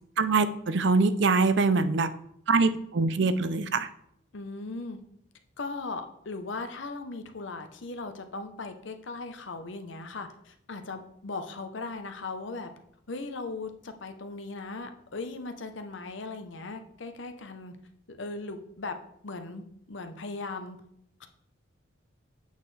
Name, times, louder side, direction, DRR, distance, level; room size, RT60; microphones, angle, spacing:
voice 1, 0.2-2.1 2.5-3.9, right 3 dB, 60° right, 12 dB, 0.5 m, -24 dB
voice 2, 4.3-5.0 5.6-12.7 13.1-17.7 18.1-18.9 19.2-20.8 21.2-21.3, left 3 dB, 65° left, 7 dB, 0.8 m, -38 dB
8.2 x 6.5 x 3.3 m, 0.71 s
head